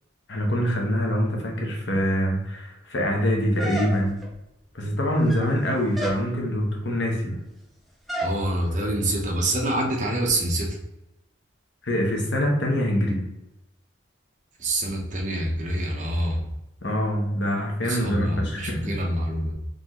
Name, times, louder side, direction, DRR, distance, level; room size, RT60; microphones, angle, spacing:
voice 1, 0.3-4.2 4.7-7.4 11.8-13.3 16.8-18.9, equal, 70° left, 0 dB, 1.0 m, -24 dB
sound 1, 3.6-4.3 5.1-5.6 5.9-6.3 8.1-8.4, right 1 dB, ahead, 0.5 m, -31 dB
voice 2, 8.2-10.7 14.6-16.4 17.9-19.5, right 1 dB, 40° right, -1 dB, 0.9 m, -26 dB
3.9 x 3.4 x 3.0 m, 0.91 s
head